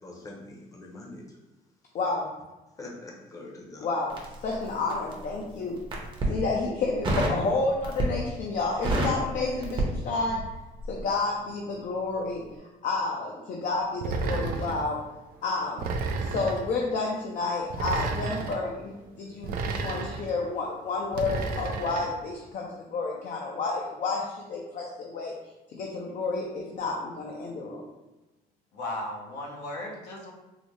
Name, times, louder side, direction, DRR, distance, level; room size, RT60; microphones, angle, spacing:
voice 1, 0.0-1.2 2.8-3.8, left 2 dB, 20° left, -2 dB, 0.7 m, -43 dB
voice 2, 1.9-2.3 3.8-5.8 6.2-10.4 10.9-12.4 12.8-15.0 15.4-25.3 25.7-27.8, left 3 dB, 50° left, -1 dB, 0.5 m, -30 dB
Crackle, 4.1-5.2 5.8-6.4 7.0-7.4 7.8-8.3 8.6-10.5 10.8-11.0, right 1 dB, 30° right, 0.8 m, -28 dB
sound 1, 14.0-14.9 15.8-16.7 17.7-18.6 19.4-20.3 21.1-22.1, right 4 dB, 60° right, 0.4 m, -31 dB
voice 3, 28.7-30.3, left 1 dB, 80° left, -2 dB, 0.8 m, -36 dB
3.9 x 2.0 x 3.1 m, 1.1 s
cardioid pair, 110°, 17 cm